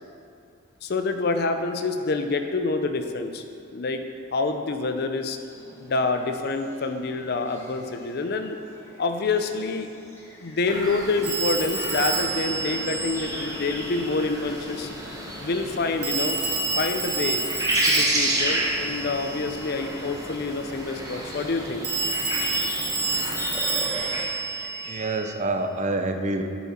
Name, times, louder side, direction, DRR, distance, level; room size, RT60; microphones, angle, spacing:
voice 1, 0.8-3.4 3.7-4.0 4.3-5.4 5.8-8.6 9.0-9.9 10.4-14.9 15.4-16.4 16.8-17.4 17.9-21.8, left 3 dB, 45° left, 6 dB, 0.5 m, -27 dB
sound 1, 5.5-24.9, left 1 dB, 10° left, 1.3 m, -43 dB
sound 2, 10.7-24.2, right 1 dB, 15° right, 1.0 m, -31 dB
Telephone, 11.2-13.9 16.0-19.7 21.8-25.3, right 3 dB, 50° right, 1.8 m, -29 dB
voice 2, 24.5-26.4, right 2 dB, 35° right, 6 dB, 0.5 m, -28 dB
8.4 x 7.1 x 4.3 m, 2.6 s
head